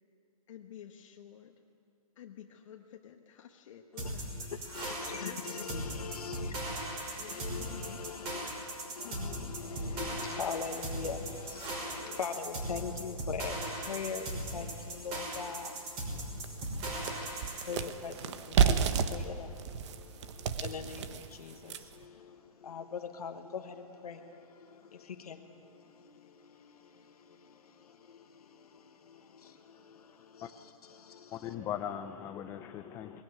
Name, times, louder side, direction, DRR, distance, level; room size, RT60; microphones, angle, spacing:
voice 1, 0.5-1.5 2.2-4.8 5.2-6.1 7.2-7.8 9.0-9.6, left 10 dB, 55° left, 1.3 m, -51 dB
voice 2, 3.9-31.5, left 6 dB, 90° left, 1.4 m, -43 dB
sound 1, 4.0-17.7, right 1 dB, 30° right, 5.9 m, -38 dB
sound 2, 14.9-15.0 15.5-15.6 16.0-22.0, right 7 dB, 50° right, 1.2 m, -31 dB
voice 3, 31.3-33.2, left 10 dB, 15° left, 0.4 m, -39 dB
20.5 x 15.5 x 9.4 m
hypercardioid pair, 155°, 19 cm